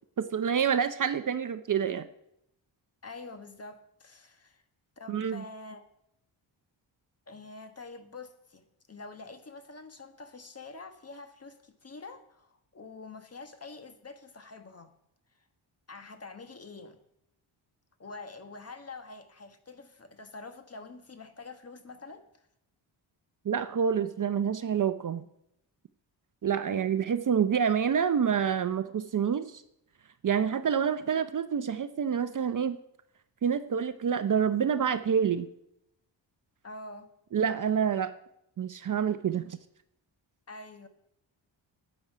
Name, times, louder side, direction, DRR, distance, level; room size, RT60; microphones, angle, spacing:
voice 1, 0.2-2.1 5.1-5.4 23.4-25.2 26.4-29.6 30.2-32.8 33.4-35.5 37.3-38.1 38.6-39.6, right 7 dB, 45° right, 11 dB, 0.6 m, -27 dB
voice 2, 3.0-4.6 5.0-5.8 7.3-14.9 15.9-17.0 18.0-22.5 26.7-26.8 36.6-37.1 40.5-40.9, left 3 dB, 30° left, 7 dB, 1.4 m, -46 dB
12.0 x 8.8 x 5.0 m, 0.79 s
cardioid pair, 85°, 47 cm